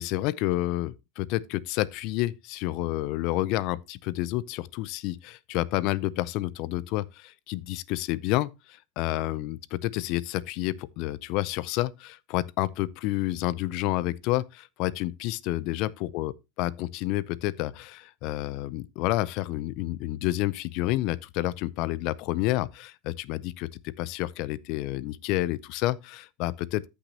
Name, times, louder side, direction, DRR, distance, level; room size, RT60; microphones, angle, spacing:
voice 1, 0.0-16.3 16.6-26.9, left 17 dB, 55° left, 0.5 m, -29 dB
13.5 x 6.1 x 2.8 m
supercardioid pair, 135°, 0 cm